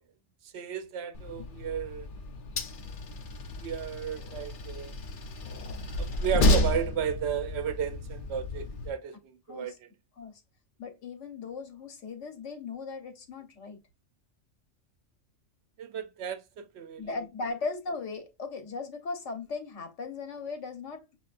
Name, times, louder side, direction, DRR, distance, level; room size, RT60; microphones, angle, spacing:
voice 1, 0.5-2.1 3.6-4.9 6.0-9.2 9.5-9.7 15.8-17.0, right 8 dB, 65° right, 0.8 m, -33 dB
Train, 1.1-8.9, left 1 dB, 50° left, 0.7 m, -31 dB
voice 2, 10.8-13.8 17.0-21.0, left 4 dB, 70° left, 1.4 m, -37 dB
6.1 x 2.8 x 2.4 m
omnidirectional pair, 1.3 m